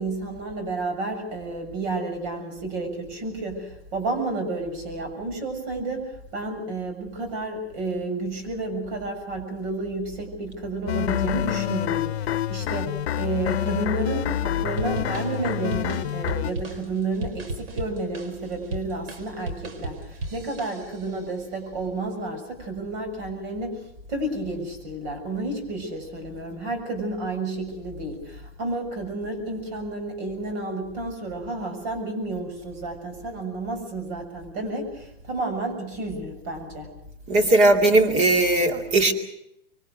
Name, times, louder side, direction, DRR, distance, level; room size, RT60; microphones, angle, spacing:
voice 1, 0.0-36.9, right 2 dB, 45° right, 6 dB, 6.8 m, -31 dB
sound 1, 10.9-16.5, left 11 dB, 80° left, 0.8 m, -27 dB
sound 2, 14.8-21.2, right 2 dB, 65° right, 4.5 m, -36 dB
voice 2, 37.3-39.1, right 2 dB, 20° right, 4 dB, 2.5 m, -18 dB
26.0 x 23.0 x 6.5 m, 0.77 s
hypercardioid pair, 155°, 31 cm